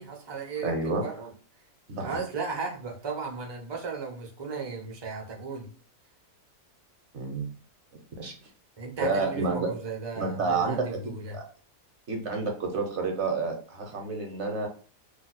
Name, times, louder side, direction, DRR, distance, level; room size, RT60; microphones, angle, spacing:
voice 1, 0.0-1.3 2.0-5.7 8.8-11.4, right 4 dB, 30° right, 0 dB, 0.5 m, -35 dB
voice 2, 0.6-1.0 1.9-2.2 7.1-7.5 8.2-8.3 9.0-9.7 10.1-10.9 11.3-11.4 12.1-14.7, right 3 dB, 60° right, 2 dB, 0.9 m, -29 dB
2.6 x 2.2 x 4.1 m, 0.39 s
omnidirectional pair, 1.5 m